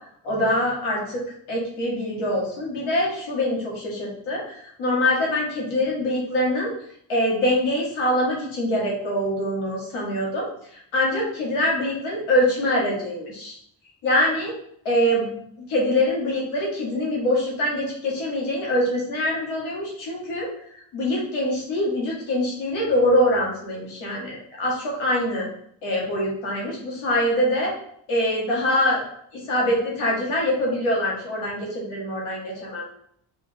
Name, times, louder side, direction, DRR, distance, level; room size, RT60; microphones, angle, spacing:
voice 1, 0.2-1.2 1.5-6.7 7.1-10.5 10.9-13.6 14.0-14.5 14.8-15.2 15.7-20.5 20.9-25.5 25.8-27.7 28.1-29.0 29.3-32.9, left 1 dB, 85° left, -4 dB, 1.7 m, -24 dB
5.0 x 2.5 x 3.5 m, 0.67 s
supercardioid pair, 50°, 47 cm